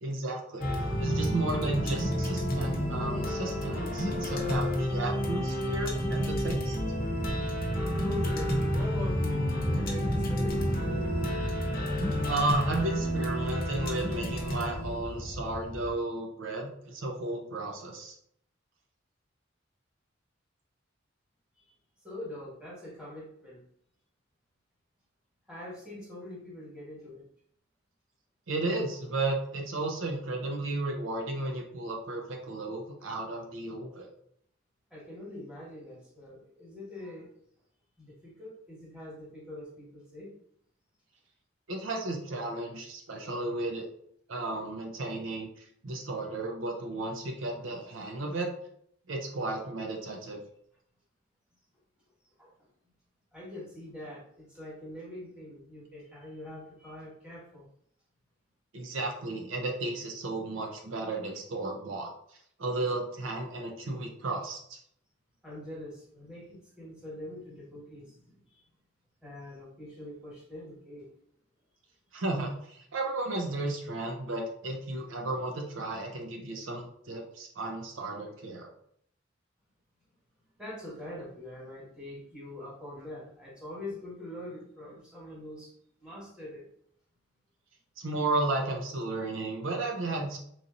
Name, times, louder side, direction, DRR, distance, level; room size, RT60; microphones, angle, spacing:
voice 1, 0.0-0.7 1.0-6.8 12.2-18.2 28.5-34.1 41.7-43.9 44.3-48.5 49.1-50.4 58.7-64.8 72.1-78.7 88.0-90.4, right 2 dB, 85° right, 2 dB, 0.7 m, -33 dB
sound 1, 0.6-15.9, equal, 50° left, 0.7 m, -30 dB
voice 2, 8.0-10.7 11.1-11.2 21.6-21.7 22.0-23.6 25.5-27.3 34.9-37.3 38.0-40.3 52.4-52.5 53.3-57.7 65.4-68.6 69.2-71.1 80.6-85.7 86.0-86.7, left 1 dB, 5° right, -6 dB, 1.5 m, -43 dB
3.1 x 2.7 x 3.8 m, 0.67 s
head